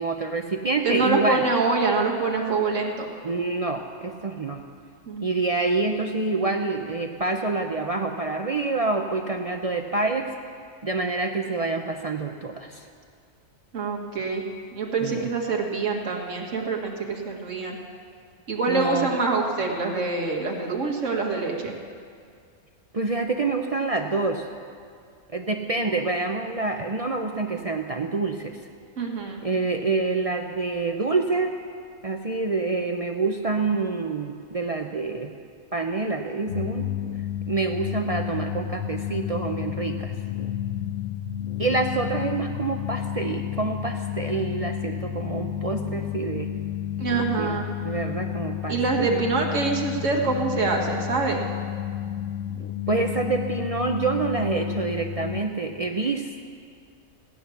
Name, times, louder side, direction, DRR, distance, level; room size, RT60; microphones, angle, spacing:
voice 1, 0.0-1.4 3.2-4.6 5.2-10.3 10.8-12.9 15.0-15.3 18.7-19.1 22.9-24.4 25.3-28.6 29.4-31.6 32.0-35.3 35.7-36.9 37.5-40.1 41.6-46.5 47.1-47.5 47.8-49.2 52.9-56.5, right 3 dB, 40° right, 4 dB, 0.5 m, -27 dB
voice 2, 0.8-3.1 5.1-5.3 13.7-14.5 14.7-17.8 18.5-21.7 29.0-29.4 47.0-47.6 48.7-51.4, right 4 dB, 65° right, 0 dB, 2.0 m, -25 dB
sound 1, 36.5-55.4, left 11 dB, 70° left, 1.0 m, -31 dB
16.5 x 9.8 x 7.0 m, 2.2 s
omnidirectional pair, 1.4 m